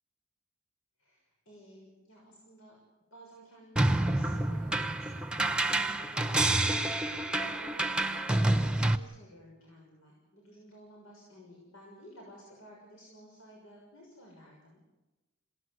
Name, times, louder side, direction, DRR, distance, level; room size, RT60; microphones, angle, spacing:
voice 1, 1.0-2.8 3.1-14.8, right 1 dB, 90° left, -2 dB, 6.5 m, -54 dB
sound 1, 3.8-9.0, right 2 dB, 5° right, 0.9 m, -28 dB
27.5 x 18.0 x 8.1 m, 1.1 s
head